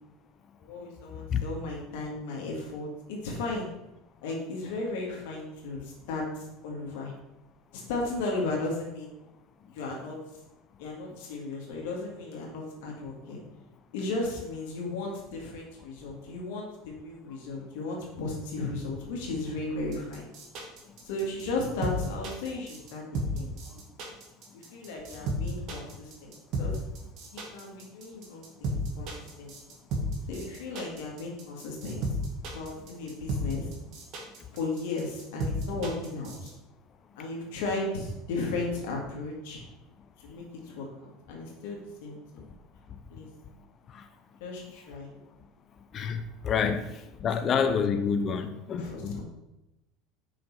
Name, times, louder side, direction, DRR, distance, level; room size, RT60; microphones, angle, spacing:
voice 1, 0.6-3.7 4.2-7.1 7.7-9.1 9.7-10.2 10.8-13.4 13.9-20.3 21.0-23.8 24.5-26.8 27.3-29.5 30.3-32.0 32.5-33.7 34.5-36.5 37.2-39.6 40.2-42.5 43.1-43.3 44.4-45.1 46.6-46.8 48.4-49.2, left 2 dB, 80° left, -1 dB, 1.9 m, -35 dB
sound 1, 19.9-36.5, right 1 dB, 50° right, 1.9 m, -33 dB
voice 2, 45.9-46.9 47.2-49.2, left 6 dB, 35° left, 8 dB, 0.5 m, -28 dB
5.6 x 5.0 x 4.7 m, 0.93 s
supercardioid pair, 125°, 0 cm